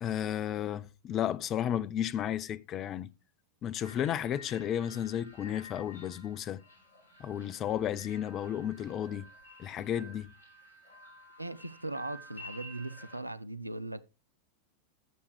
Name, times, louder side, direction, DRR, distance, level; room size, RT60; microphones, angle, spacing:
voice 1, 0.0-3.1 3.6-6.6 7.2-9.3 9.6-10.3, left 10 dB, 30° left, 0.6 m, -33 dB
sound 1, 3.8-13.2, left 1 dB, 65° left, 4.7 m, -52 dB
voice 2, 11.4-14.0, right 2 dB, 85° right, 0.5 m, -39 dB
14.0 x 7.0 x 3.3 m
figure-of-eight pair, 90°, 0 cm